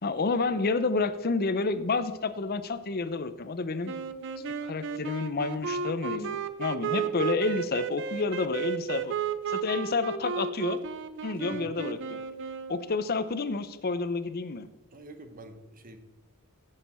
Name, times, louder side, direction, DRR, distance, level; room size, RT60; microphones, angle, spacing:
voice 1, 0.0-3.9 4.6-9.1 9.5-10.8 11.2-12.2 12.7-14.7, left 3 dB, 45° left, 12 dB, 0.6 m, -29 dB
sound 1, 3.8-13.0, right 6 dB, 55° right, 0.5 m, -34 dB
voice 2, 11.5-11.8 14.9-16.0, right 1 dB, 40° right, 8 dB, 0.9 m, -46 dB
16.0 x 6.5 x 4.3 m, 1.1 s
head